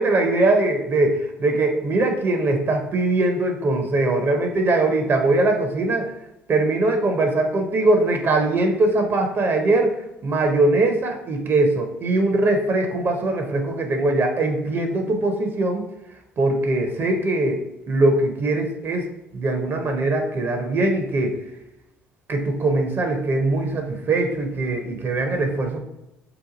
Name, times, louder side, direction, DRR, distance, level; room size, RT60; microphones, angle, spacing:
voice 1, 0.0-6.1 6.5-9.9 10.2-15.8 16.4-17.6 17.9-19.0 19.3-21.3 22.3-25.8, right 2 dB, 40° right, 4 dB, 0.6 m, -21 dB
2.8 x 2.3 x 3.8 m, 0.89 s
hypercardioid pair, 65°, 5 cm